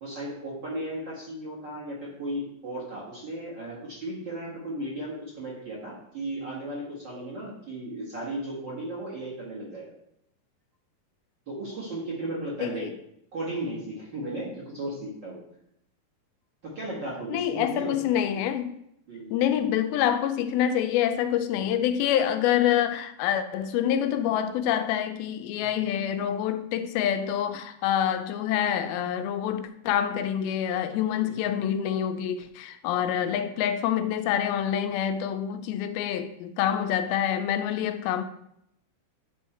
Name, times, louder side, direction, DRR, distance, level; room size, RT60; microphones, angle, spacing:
voice 1, 0.0-9.9 11.5-12.9 13.3-15.4 16.6-18.0 18.3-18.4 19.1-19.3 21.6-21.7 25.6-25.7 31.2-31.4 32.9-33.1, right 1 dB, 45° right, 1.5 m, -35 dB
voice 2, 12.6-12.9 17.3-18.7 19.3-38.2, left 10 dB, 85° left, 2.4 m, -26 dB
10.5 x 3.7 x 4.4 m
omnidirectional pair, 4.4 m